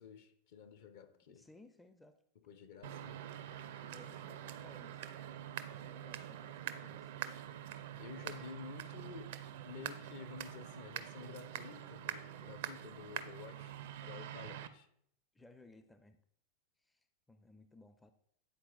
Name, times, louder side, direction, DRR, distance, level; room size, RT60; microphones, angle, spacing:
voice 1, 0.0-1.5 2.4-3.2 8.0-9.4 9.6-13.8 14.1-14.9, left 6 dB, 50° left, 0.7 m, -51 dB
voice 2, 1.3-2.2 3.8-5.2 5.7-7.1 14.0-14.4 15.3-16.2 16.8-18.1, left 2 dB, 10° left, 0.4 m, -60 dB
sound 1, 2.8-14.7, right 11 dB, 55° right, 0.4 m, -45 dB
9.1 x 4.3 x 3.9 m
figure-of-eight pair, 90°, 0 cm